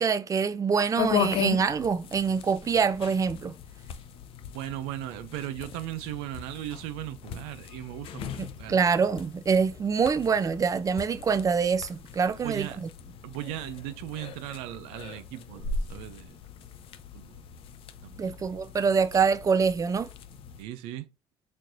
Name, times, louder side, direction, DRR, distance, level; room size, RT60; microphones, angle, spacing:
voice 1, 0.0-3.5 8.4-12.9 18.2-20.1, right 6 dB, 35° right, 0.5 m, -25 dB
sound 1, 1.0-20.6, left 7 dB, 70° left, 0.5 m, -38 dB
voice 2, 4.5-8.8 12.4-12.8 13.2-16.7 17.1-17.4 18.0-18.4 20.6-21.1, right 14 dB, 85° right, 0.4 m, -38 dB
4.3 x 3.1 x 2.6 m
supercardioid pair, 65°, 10 cm